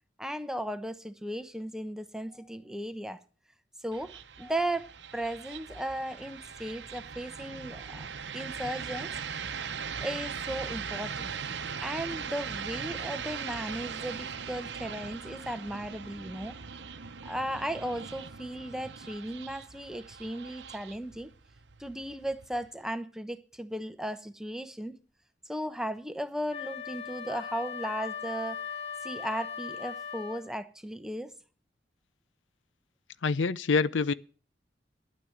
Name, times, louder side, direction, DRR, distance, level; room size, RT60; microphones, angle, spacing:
voice 1, 0.2-3.2 3.8-4.1 4.4-9.1 10.0-11.3 11.8-16.6 17.2-21.3 21.8-25.0 25.5-28.6 29.0-31.3, right 1 dB, 5° right, 0.9 m, -36 dB
sound 1, 3.9-22.9, right 6 dB, 65° right, 0.9 m, -40 dB
Wind instrument woodwind instrument, 26.5-30.5, left 6 dB, 35° left, 1.3 m, -39 dB
voice 2, 33.2-34.1, left 4 dB, 85° left, 0.6 m, -26 dB
11.0 x 9.4 x 7.9 m
head